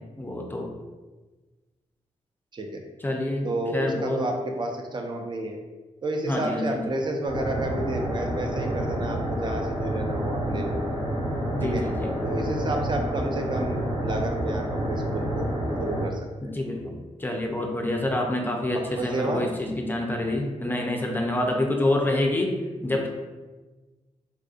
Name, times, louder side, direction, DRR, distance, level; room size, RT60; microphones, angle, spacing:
voice 1, 0.1-0.7 3.0-4.2 6.3-6.8 11.5-12.2 16.4-22.5 22.8-23.1, left 1 dB, 15° left, 1 dB, 0.4 m, -27 dB
voice 2, 3.4-5.6 6.0-10.8 11.6-11.9 12.2-15.5 15.8-16.5 18.7-19.4, right 2 dB, 35° right, 3 dB, 0.5 m, -31 dB
sound 1, 7.2-16.0, equal, 60° right, 1.3 m, -29 dB
3.5 x 2.5 x 2.4 m, 1.3 s
cardioid pair, 90°, 13 cm